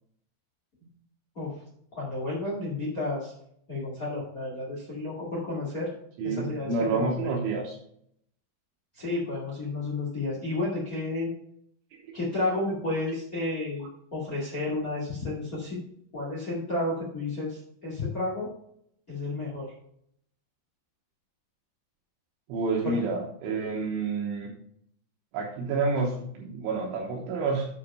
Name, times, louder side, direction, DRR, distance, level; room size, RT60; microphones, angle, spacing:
voice 1, 1.9-3.3 3.7-5.9 6.2-7.3 8.9-11.3 12.1-15.8 16.1-18.5 19.1-19.7 22.8-22.9, left 2 dB, 75° left, -5 dB, 0.8 m, -31 dB
voice 2, 6.2-7.8 22.5-24.5 25.3-27.7, right 3 dB, 75° right, -1 dB, 3.3 m, -29 dB
8.5 x 5.0 x 5.4 m, 0.69 s
omnidirectional pair, 5.9 m